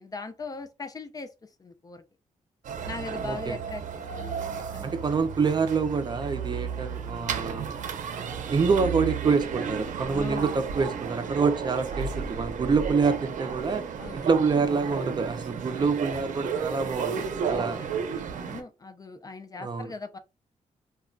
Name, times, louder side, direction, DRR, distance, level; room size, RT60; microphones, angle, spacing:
voice 1, 0.0-2.0 2.8-4.4 4.7-5.2 10.0-10.5 14.0-14.3 17.5-20.2, left 3 dB, 30° left, 0.4 m, -40 dB
sound 1, 2.6-18.6, right 6 dB, 80° right, 0.5 m, -33 dB
voice 2, 3.2-3.6 4.8-7.7 8.5-13.8 14.1-17.8 19.6-19.9, right 5 dB, 35° right, 0.5 m, -26 dB
2.3 x 2.1 x 3.7 m
wide cardioid pair, 120°, 13 cm